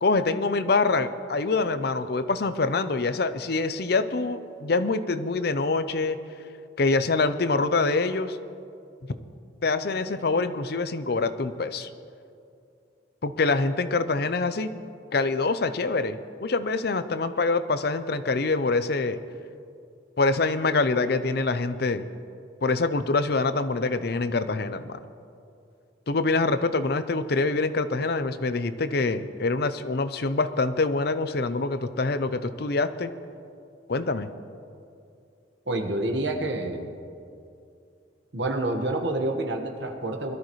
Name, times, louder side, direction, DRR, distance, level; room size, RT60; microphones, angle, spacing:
voice 1, 0.0-6.2 6.8-8.4 9.6-11.9 13.2-14.7 15.1-19.2 20.2-22.0 22.6-25.0 26.1-33.1 33.9-34.3, left 3 dB, 55° left, 11 dB, 0.6 m, -25 dB
voice 2, 35.7-36.9 38.3-40.3, right 2 dB, 70° right, 3 dB, 1.5 m, -28 dB
21.5 x 13.0 x 3.2 m, 2.5 s
head